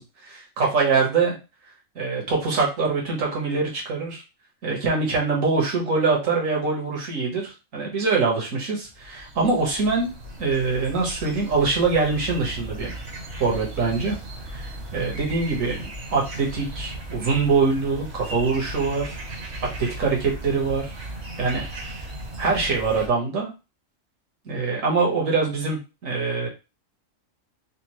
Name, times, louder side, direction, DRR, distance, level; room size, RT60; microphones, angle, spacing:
voice 1, 0.6-1.4 2.0-4.2 4.6-10.1 10.4-12.9 13.4-14.2 14.5-15.8 16.1-19.2 19.8-21.0 21.4-21.7 22.4-23.5 24.5-26.5, right 4 dB, 80° right, -2 dB, 1.7 m, -23 dB
sound 1, 8.9-23.1, right 1 dB, 55° right, 1.1 m, -36 dB
4.3 x 2.5 x 3.0 m, 0.28 s
omnidirectional pair, 1.4 m